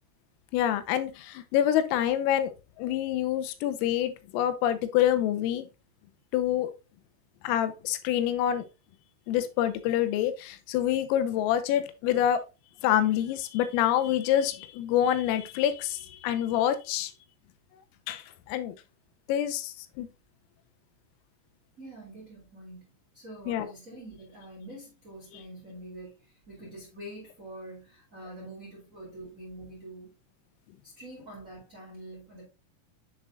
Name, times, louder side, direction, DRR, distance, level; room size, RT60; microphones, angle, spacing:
voice 1, 0.5-5.7 6.3-6.7 7.4-8.7 9.3-12.4 12.8-17.1 18.1-18.8 19.3-20.1 23.5-23.7, left 11 dB, 85° left, 3.5 m, -27 dB
voice 2, 21.8-30.1 30.8-32.4, right 1 dB, 25° right, 1.8 m, -45 dB
7.7 x 7.6 x 2.4 m
omnidirectional pair, 5.9 m